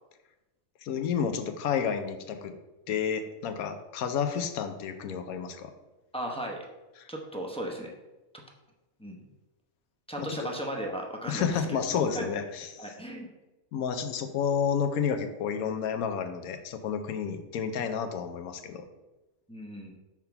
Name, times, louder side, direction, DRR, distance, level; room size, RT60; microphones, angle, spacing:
voice 1, 0.8-2.5 2.9-5.7 7.0-7.1 10.2-10.5 11.3-12.9 13.7-18.8, left 7 dB, 85° left, 7 dB, 1.1 m, -30 dB
voice 2, 6.1-6.6 7.1-7.9 9.0-9.2 10.1-11.8 12.1-12.2 12.8-13.3 19.5-19.9, right 1 dB, 5° left, -1 dB, 0.5 m, -36 dB
6.0 x 3.6 x 5.7 m, 1.1 s
omnidirectional pair, 1.5 m